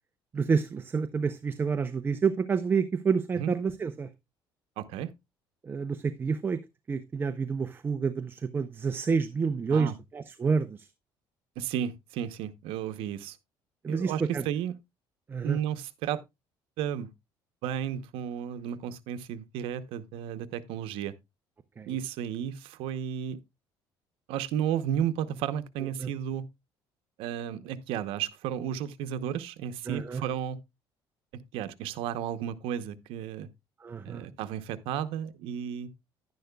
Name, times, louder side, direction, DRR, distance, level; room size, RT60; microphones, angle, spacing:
voice 1, 0.3-4.1 5.6-6.6 6.9-10.9 13.8-14.4 15.3-15.6 21.8-21.9 26.0-26.1 29.9-30.2 33.8-34.2, right 5 dB, 25° right, 0.6 m, -29 dB
voice 2, 4.8-5.1 9.7-9.9 11.6-13.4 13.9-14.8 15.4-16.2 16.8-17.1 17.6-21.1 21.9-23.4 24.3-26.5 27.2-30.6 31.5-33.5 34.0-35.9, right 9 dB, 80° right, 0.8 m, -33 dB
10.5 x 10.5 x 2.3 m
cardioid pair, 130°, 9 cm